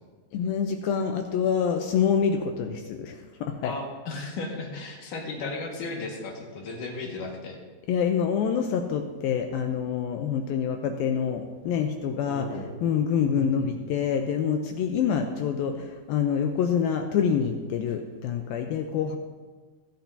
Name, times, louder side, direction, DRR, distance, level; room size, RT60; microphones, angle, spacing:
voice 1, 0.3-3.7 7.9-12.5 12.8-19.2, left 7 dB, 85° left, 5 dB, 2.2 m, -26 dB
voice 2, 3.6-7.6 12.3-12.7 13.3-13.7, left 3 dB, 60° left, 0 dB, 2.8 m, -35 dB
24.5 x 8.8 x 2.7 m, 1.3 s
omnidirectional pair, 4.9 m